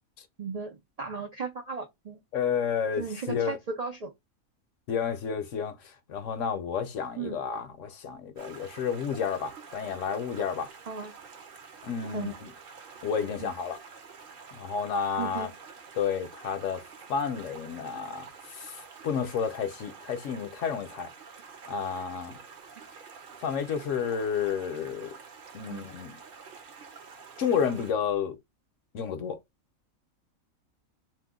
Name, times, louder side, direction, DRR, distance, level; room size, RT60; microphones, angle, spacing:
voice 1, 0.4-2.2 3.0-4.1 7.2-7.4 10.9-11.1 12.1-12.3 13.4-13.5 15.2-15.5 25.7-25.8, right 5 dB, 65° right, 0.3 m, -35 dB
voice 2, 2.3-3.6 4.9-5.8 6.1-10.7 11.8-12.5 13.0-13.8 14.5-15.5 15.9-16.8 17.1-21.1 21.7-22.4 23.4-25.1 25.5-26.2 27.4-28.4 28.9-29.4, left 7 dB, 65° left, 1.0 m, -31 dB
Stream, 8.4-27.9, right 5 dB, 50° right, 0.7 m, -48 dB
2.7 x 2.2 x 3.5 m
omnidirectional pair, 1.5 m